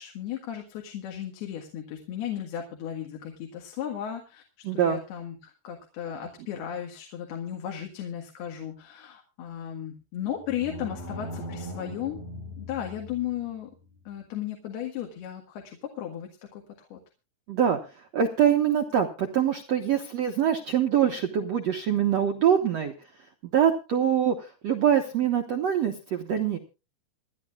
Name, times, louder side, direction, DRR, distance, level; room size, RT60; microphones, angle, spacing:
voice 1, 0.0-4.4 4.7-12.2 12.6-13.7 14.1-17.0, left 10 dB, 75° left, 2 dB, 3.6 m, -35 dB
voice 2, 4.6-5.0 17.5-17.8 18.1-22.9 23.5-26.6, right 9 dB, 70° right, 4 dB, 1.5 m, -24 dB
sound 1, 10.2-13.4, equal, 60° left, 5.0 m, -39 dB
27.5 x 11.0 x 2.4 m, 0.30 s
omnidirectional pair, 4.7 m